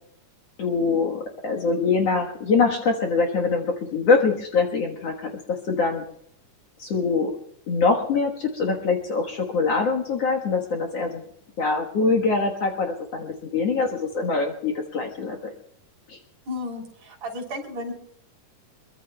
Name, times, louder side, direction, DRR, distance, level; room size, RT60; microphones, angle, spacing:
voice 1, 0.6-6.0 6.8-7.4 7.7-11.2 11.6-15.4 16.1-16.2, left 4 dB, 55° left, 0 dB, 2.3 m, -24 dB
voice 2, 16.5-17.9, left 2 dB, 55° right, 0 dB, 4.6 m, -33 dB
25.0 x 22.5 x 2.3 m, 0.68 s
omnidirectional pair, 3.8 m